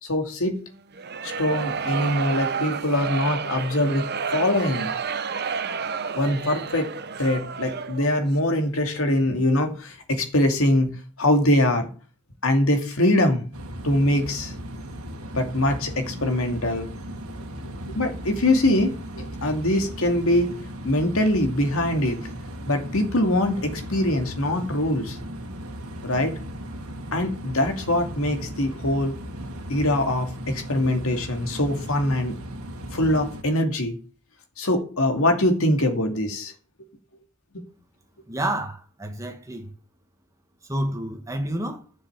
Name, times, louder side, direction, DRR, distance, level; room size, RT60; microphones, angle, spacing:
voice 1, 0.0-0.6 1.2-4.9 6.1-6.9 7.2-11.9 12.4-13.4 13.8-14.5 15.3-16.9 17.9-20.5 20.8-22.2 22.7-25.2 26.0-26.3 27.1-29.2 29.7-32.4 32.9-34.0 34.6-36.5, left 1 dB, 65° left, 2.4 m, -23 dB
sound 1, 0.9-8.2, right 6 dB, 45° right, 0.9 m, -30 dB
sound 2, 13.5-33.4, equal, 75° right, 1.8 m, -37 dB
voice 2, 38.3-39.7 40.7-41.8, right 1 dB, 15° right, 1.7 m, -29 dB
11.5 x 7.1 x 7.1 m
head